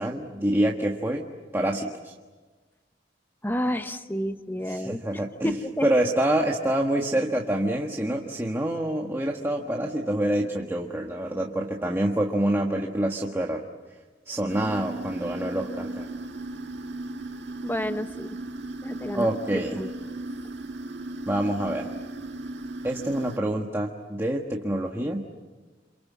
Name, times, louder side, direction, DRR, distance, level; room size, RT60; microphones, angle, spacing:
voice 1, 0.0-2.1 4.7-5.5 5.8-13.6 14.3-16.1 19.1-19.8 21.3-21.9 22.8-25.2, right 1 dB, 15° right, 0 dB, 1.5 m, -26 dB
voice 2, 3.4-5.9 17.6-18.4 18.8-19.3 19.5-19.9, equal, 10° left, 9 dB, 1.1 m, -30 dB
sound 1, 14.5-23.4, right 2 dB, 65° right, 1.8 m, -36 dB
29.0 x 27.0 x 7.4 m, 1.3 s
head